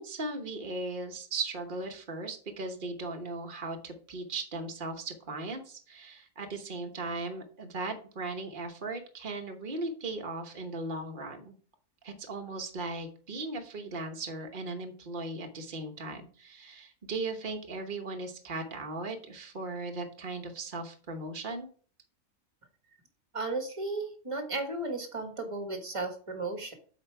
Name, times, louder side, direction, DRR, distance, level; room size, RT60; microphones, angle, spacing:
voice 1, 0.0-11.5 12.0-21.7, right 3 dB, 45° right, 4 dB, 1.3 m, -37 dB
voice 2, 23.3-26.7, right 2 dB, 25° right, 4 dB, 1.5 m, -34 dB
8.0 x 5.0 x 4.6 m, 0.43 s
omnidirectional pair, 1.3 m